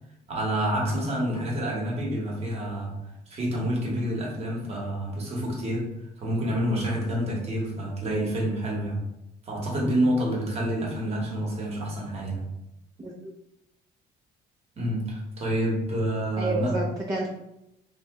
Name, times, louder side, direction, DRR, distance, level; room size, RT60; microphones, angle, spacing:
voice 1, 0.3-3.0 3.3-9.1 9.5-12.5 14.8-16.8, right 1 dB, 40° right, -2 dB, 1.0 m, -28 dB
voice 2, 13.0-13.3 16.4-17.3, right 3 dB, 20° right, -4 dB, 0.4 m, -30 dB
2.6 x 2.1 x 3.5 m, 0.86 s
cardioid pair, 110°, 17 cm